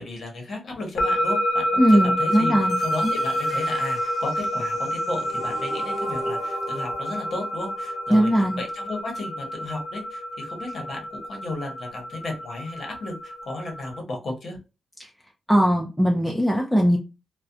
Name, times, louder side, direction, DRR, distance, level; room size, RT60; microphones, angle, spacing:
voice 1, 0.0-2.5 2.8-8.3 8.6-14.6, left 2 dB, 40° left, 0.9 m, -34 dB
sound 1, 1.0-14.0, equal, 80° left, 0.5 m, -28 dB
voice 2, 1.8-2.8 3.0-3.1 8.1-8.6 15.0-15.1 15.5-17.0, equal, ahead, 0.3 m, -19 dB
sound 2, 2.7-8.7, right 2 dB, 60° right, 0.7 m, -39 dB
2.4 x 2.0 x 2.5 m
wide cardioid pair, 170°, 0 cm